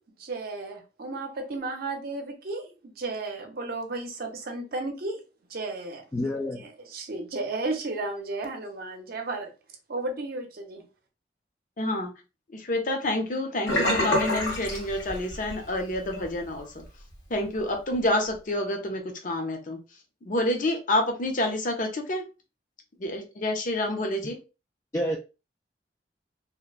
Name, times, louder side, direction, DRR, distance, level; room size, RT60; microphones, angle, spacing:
voice 1, 0.2-5.2 5.5-6.0 6.6-9.5 9.9-10.8, right 2 dB, 55° right, 0.6 m, -33 dB
voice 2, 6.1-6.7 24.9-25.2, left 1 dB, 15° left, 0.3 m, -28 dB
voice 3, 11.8-12.1 12.7-16.7 17.3-19.8 20.3-22.2 23.0-24.4, left 1 dB, 50° left, 0.6 m, -28 dB
Sink (filling or washing), 13.7-15.6 15.9-16.2 16.6-16.7, left 1 dB, 85° left, 1.5 m, -26 dB
2.8 x 2.1 x 2.3 m
head